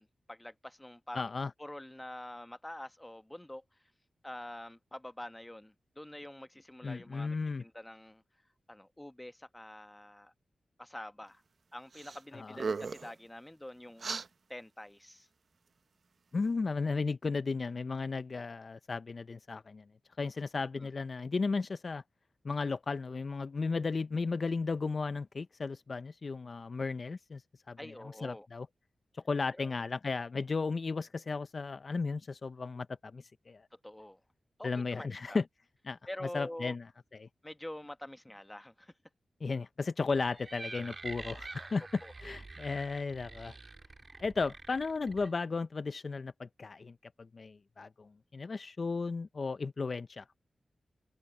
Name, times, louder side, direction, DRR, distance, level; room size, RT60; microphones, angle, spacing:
voice 1, 0.0-1.3 1.6-3.6 4.2-8.2 8.7-10.3 10.8-11.4 11.7-14.1 14.5-15.3 20.8-20.9 27.8-28.5 29.5-29.8 33.8-34.2 34.6-35.4 36.1-36.8 37.4-38.9 42.0-42.1, left 1 dB, 10° left, 1.1 m, -46 dB
voice 2, 1.1-1.5 6.8-7.6 12.3-12.6 16.3-19.8 20.2-22.0 22.4-27.4 27.7-27.9 28.2-28.7 29.1-33.6 34.6-35.4 35.9-36.0 36.3-36.9 37.1-37.3 39.4-43.6 44.2-50.4, left 4 dB, 50° left, 0.5 m, -35 dB
sound 1, 11.9-12.2 12.5-13.1 14.0-14.3, right 4 dB, 65° right, 0.8 m, -36 dB
sound 2, 40.1-45.3, right 3 dB, 40° right, 1.6 m, -47 dB
cardioid pair, 75°, 0 cm